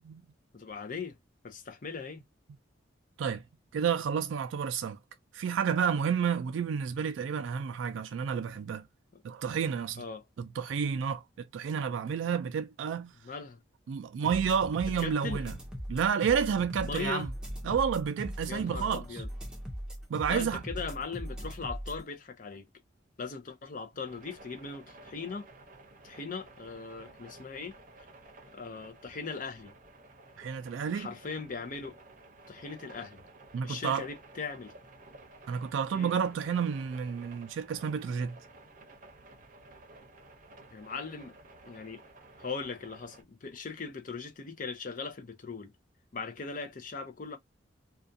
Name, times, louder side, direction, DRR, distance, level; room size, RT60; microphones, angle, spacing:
voice 1, 0.5-1.2 1.4-2.2 9.1-9.2 10.0-10.2 13.2-13.6 15.0-15.4 16.8-17.3 18.5-19.3 20.3-22.7 23.2-25.5 26.0-27.8 28.5-29.7 30.9-32.0 32.5-33.2 33.6-34.7 35.9-36.1 40.7-41.4 41.7-42.0 42.4-45.7 46.1-47.4, left 4 dB, 45° left, 0.5 m, -39 dB
voice 2, 3.7-5.0 5.3-8.8 9.2-10.0 10.4-13.1 13.9-15.5 15.9-17.3 17.6-19.2 20.1-20.6 30.4-31.1 33.5-34.0 35.5-38.4, right 7 dB, 80° right, 0.3 m, -30 dB
sound 1, 14.2-22.0, equal, 5° right, 0.6 m, -39 dB
sound 2, 24.0-43.2, right 2 dB, 45° right, 0.6 m, -54 dB
2.4 x 2.2 x 2.6 m
head